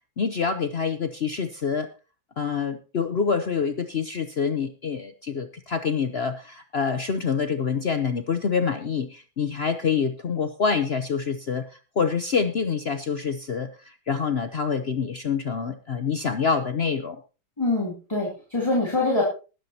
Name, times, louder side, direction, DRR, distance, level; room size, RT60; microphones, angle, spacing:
voice 1, 0.2-1.9 2.4-17.2, left 6 dB, 65° left, 9 dB, 0.6 m, -26 dB
voice 2, 17.6-19.2, left 2 dB, 15° left, -3 dB, 2.9 m, -24 dB
20.0 x 10.0 x 2.8 m, 0.34 s
omnidirectional pair, 2.1 m